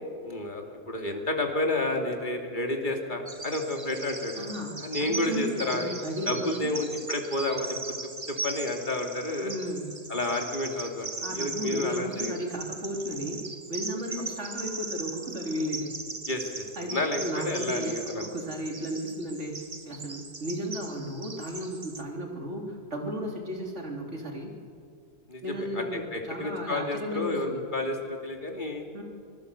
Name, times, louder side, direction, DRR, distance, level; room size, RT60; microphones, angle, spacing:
voice 1, 0.2-4.5 4.8-5.9 6.3-7.8 8.3-9.5 10.1-12.3 16.3-18.3 25.3-28.8, left 2 dB, 45° left, 2 dB, 2.8 m, -30 dB
Bird vocalization bird call bird song, 3.3-22.0, right 3 dB, 25° right, 1.1 m, -39 dB
voice 2, 4.4-6.8 9.4-9.9 11.2-13.4 13.7-15.9 16.8-19.6 19.9-24.5 25.4-27.6 28.9-29.0, equal, 80° right, 1 dB, 3.6 m, -34 dB
25.0 x 19.5 x 8.2 m, 2.3 s
omnidirectional pair, 1.2 m